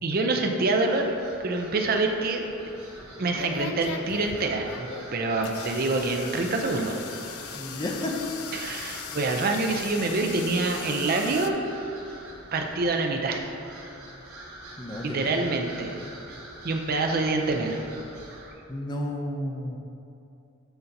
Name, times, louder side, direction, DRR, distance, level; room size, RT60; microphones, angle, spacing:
voice 1, 0.0-1.1 1.4-2.4 3.2-7.0 8.5-11.6 12.5-13.6 15.0-16.0 16.6-17.8 18.3-18.5, right 3 dB, 45° right, 3 dB, 0.5 m, -26 dB
sound 1, 0.8-18.5, right 1 dB, 85° right, 1.0 m, -45 dB
sound 2, 2.5-11.5, left 7 dB, 80° left, 0.3 m, -39 dB
voice 2, 7.5-8.1 14.8-15.5 18.7-19.8, left 1 dB, 20° left, 1 dB, 0.5 m, -32 dB
7.9 x 2.8 x 5.2 m, 2.7 s
head